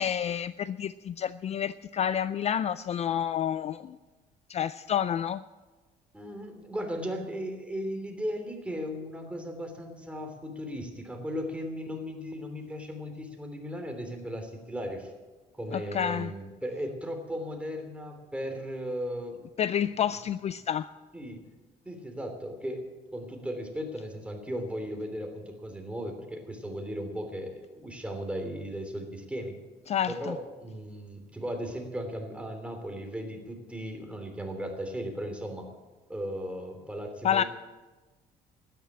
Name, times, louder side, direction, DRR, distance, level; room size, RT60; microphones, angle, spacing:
voice 1, 0.0-4.0 4.5-5.4 15.7-16.3 19.6-20.9 29.9-30.4 37.2-37.4, left 9 dB, 40° left, 15 dB, 0.4 m, -29 dB
voice 2, 6.1-15.1 15.6-19.5 21.1-21.4 21.8-22.8 23.1-29.5 30.1-35.7 36.1-37.5, equal, 5° right, 3 dB, 3.0 m, -36 dB
12.5 x 10.0 x 8.7 m, 1.3 s
cardioid pair, 110°, 17 cm